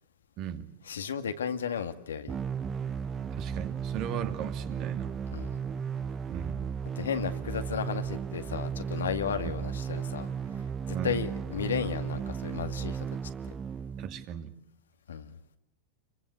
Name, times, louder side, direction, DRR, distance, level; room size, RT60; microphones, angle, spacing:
voice 1, 0.4-0.7 3.4-5.1 6.3-6.7 9.4-9.5 10.9-11.2 14.0-14.5, right 10 dB, 45° right, 7 dB, 2.7 m, -37 dB
voice 2, 0.9-2.3 5.3-5.6 7.0-10.3 11.0-13.1 15.1-15.3, left 7 dB, 75° left, 8 dB, 2.1 m, -34 dB
sound 1, 2.3-14.2, right 7 dB, 30° right, 1.1 m, -35 dB
29.0 x 24.0 x 8.2 m, 0.77 s
hypercardioid pair, 95°, 0 cm